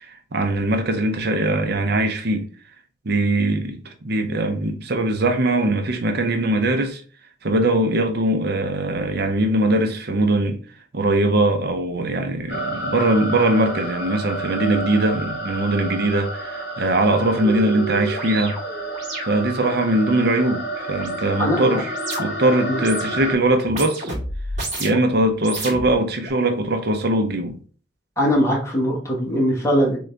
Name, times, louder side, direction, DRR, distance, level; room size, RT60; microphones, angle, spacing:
voice 1, 0.0-2.5 3.1-7.0 7.4-10.6 10.9-18.6 19.2-21.9 22.2-24.1 24.8-27.6, right 1 dB, 60° right, 0.7 m, -21 dB
sound 1, 12.5-23.3, right 1 dB, 65° left, 1.5 m, -30 dB
sound 2, 16.4-16.5 16.9-22.5 22.8-23.3 23.6-25.1 25.4-26.3, right 2 dB, 40° right, 2.2 m, -32 dB
voice 2, 21.4-21.8 22.7-22.8 28.2-30.0, equal, 15° left, 1.5 m, -21 dB
3.8 x 3.8 x 3.4 m
head